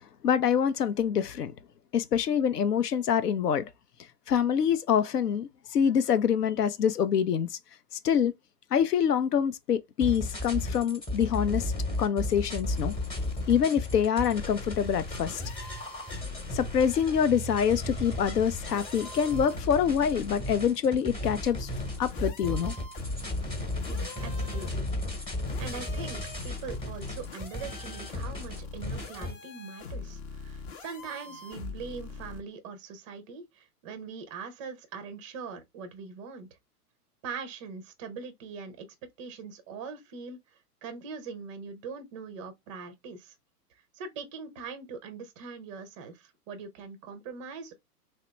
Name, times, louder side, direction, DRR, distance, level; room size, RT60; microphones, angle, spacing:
voice 1, 0.2-1.5 1.9-3.7 4.3-7.6 8.0-8.3 8.7-11.7 12.0-12.9 13.5-15.4 16.5-21.7 22.0-22.7, left 8 dB, 75° left, 0.7 m, -26 dB
sound 1, 10.0-29.3, left 1 dB, 10° left, 0.9 m, -35 dB
sound 2, 12.7-13.6 14.4-16.9 17.8-20.4 21.2-32.4, left 3 dB, 35° left, 0.7 m, -42 dB
voice 2, 23.9-24.8 25.1-25.3 25.6-36.5 37.2-38.9 39.2-43.4 43.9-47.7, right 5 dB, 20° right, 0.4 m, -42 dB
3.0 x 2.9 x 3.2 m
figure-of-eight pair, 115°, 48 cm